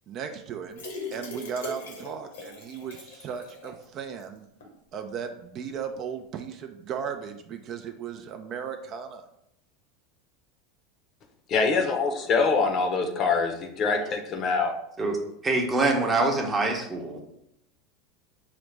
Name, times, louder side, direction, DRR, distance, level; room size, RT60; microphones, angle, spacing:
voice 1, 0.1-0.8 1.1-4.5 4.9-9.3, right 7 dB, 45° right, 0.4 m, -36 dB
sound 1, 0.7-3.8 4.2-4.3 4.6-4.7, left 2 dB, 85° left, 0.9 m, -40 dB
voice 2, 11.5-14.7, left 4 dB, 45° left, 0.6 m, -24 dB
voice 3, 15.4-17.2, right 2 dB, 20° right, 0.8 m, -24 dB
4.8 x 2.0 x 3.2 m
hypercardioid pair, 105°, 0 cm